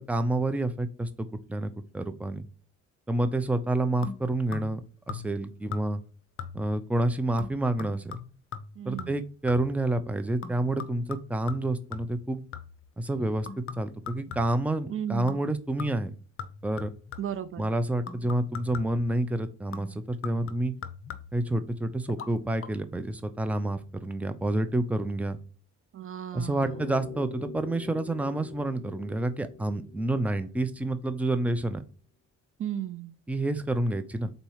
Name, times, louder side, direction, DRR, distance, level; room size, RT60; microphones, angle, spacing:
voice 1, 0.0-2.4 3.1-4.8 5.1-6.0 6.5-8.2 8.9-12.4 13.0-16.2 16.6-16.9 17.6-20.7 21.3-25.4 26.3-31.8 33.3-34.3, right 1 dB, 5° right, 10 dB, 0.6 m, -29 dB
sound 1, 4.0-4.8 5.1-5.4 5.7-6.1 6.4-6.8 7.4-9.8 10.4-12.9 13.5-14.7 15.3-15.5 15.8-17.4 18.1-19.1 19.7-21.5 22.1-22.3 22.6-22.7, left 6 dB, 45° left, 0.8 m, -41 dB
voice 2, 8.8-9.2 14.9-15.4 17.2-17.7 25.9-26.8 32.6-33.2, right 10 dB, 45° right, 13 dB, 0.5 m, -35 dB
sound 2, 26.6-31.3, left 5 dB, 15° left, 1.3 m, -45 dB
4.4 x 4.1 x 5.6 m, 0.39 s
cardioid pair, 90°, 30 cm